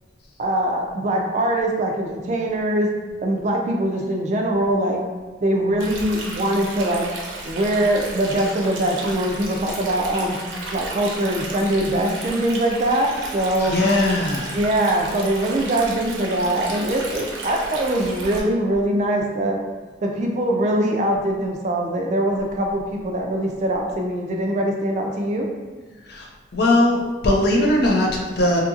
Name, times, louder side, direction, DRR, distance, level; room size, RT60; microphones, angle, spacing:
voice 1, 0.4-2.9 3.2-5.0 5.4-7.1 7.4-10.4 10.7-13.7 14.5-19.6 20.0-25.5, right 1 dB, 35° right, 1 dB, 0.3 m, -22 dB
Stream, 5.8-18.4, right 2 dB, 85° right, 0.6 m, -34 dB
voice 2, 13.6-14.6 26.1-26.3 26.5-28.6, left 1 dB, 55° left, -1 dB, 0.5 m, -19 dB
2.8 x 2.4 x 2.6 m, 1.4 s
head